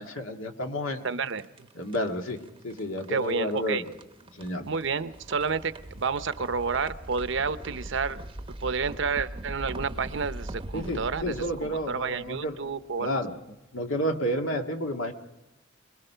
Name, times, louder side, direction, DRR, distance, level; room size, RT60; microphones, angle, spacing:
voice 1, 0.0-1.1 1.8-2.4 2.6-3.9 4.3-4.6 10.7-12.5 13.0-13.3 13.7-15.1, equal, 85° left, 4 dB, 1.9 m, -30 dB
sound 1, 1.0-13.1, right 1 dB, 25° right, 0.8 m, -42 dB
voice 2, 1.0-1.5 3.1-3.8 4.7-8.2 8.6-13.2, right 5 dB, 60° right, 12 dB, 0.7 m, -30 dB
25.0 x 21.0 x 5.7 m, 0.99 s
head